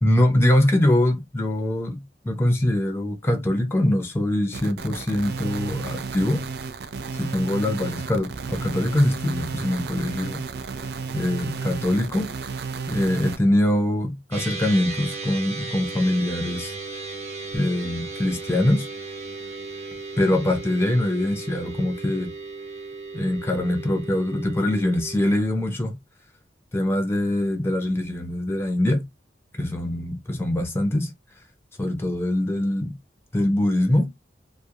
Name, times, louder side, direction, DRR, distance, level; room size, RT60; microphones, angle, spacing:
voice 1, 0.0-6.4 7.1-10.4 11.1-12.3 12.9-16.7 17.5-18.9 20.2-22.3 23.1-26.0 26.7-29.0 29.6-31.1 31.8-32.9 33.3-34.1, left 1 dB, 15° left, 0.6 m, -23 dB
sound 1, 4.5-13.4, right 5 dB, 60° right, 0.3 m, -33 dB
sound 2, 14.3-25.4, right 3 dB, 40° right, 0.8 m, -36 dB
2.3 x 2.1 x 2.7 m
head